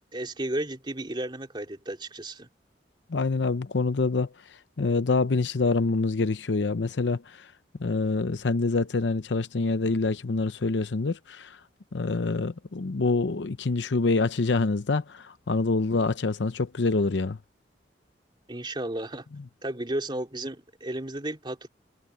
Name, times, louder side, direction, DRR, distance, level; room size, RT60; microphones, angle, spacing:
voice 1, 0.1-2.5 18.5-19.2 19.6-21.7, right 1 dB, 25° right, 3.0 m, -33 dB
voice 2, 3.1-4.3 4.8-7.2 7.8-11.6 11.9-17.4, left 3 dB, 75° left, 0.7 m, -26 dB
head